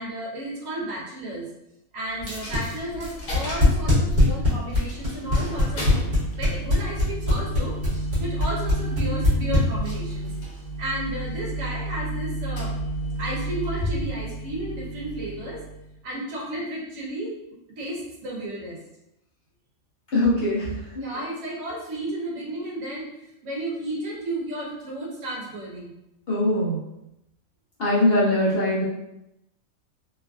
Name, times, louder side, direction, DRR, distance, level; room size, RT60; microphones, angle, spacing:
voice 1, 0.0-1.5 1.9-6.0 6.4-10.3 10.8-12.7 13.2-15.7 16.0-17.3 17.8-18.8 20.9-23.1 23.4-25.9, right 1 dB, 70° right, -4 dB, 1.2 m, -33 dB
Coin (dropping), 2.2-16.0, right 1 dB, 75° left, 1.2 m, -32 dB
sound 1, 2.2-10.1, left 2 dB, 40° right, 1.2 m, -21 dB
voice 2, 20.1-21.0 26.3-26.8 27.8-28.9, left 1 dB, 55° left, -8 dB, 0.8 m, -22 dB
3.1 x 2.4 x 2.3 m, 0.87 s
omnidirectional pair, 1.5 m